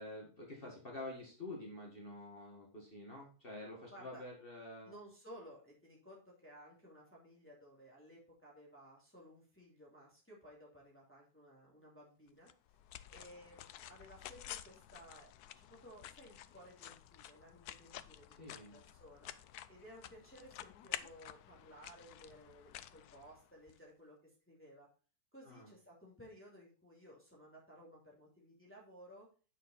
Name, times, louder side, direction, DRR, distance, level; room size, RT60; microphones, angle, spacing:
voice 1, 0.0-4.9 18.4-18.8 25.4-25.7, left 2 dB, 35° left, -2 dB, 2.2 m, -48 dB
voice 2, 3.9-4.2 4.8-12.5 13.1-15.3 15.6-19.3 19.7-24.9 25.3-29.3, equal, 10° left, -5 dB, 2.9 m, -57 dB
sound 1, 12.5-23.8, left 12 dB, 85° left, 1.1 m, -51 dB
8.9 x 6.4 x 4.3 m, 0.37 s
omnidirectional pair, 1.6 m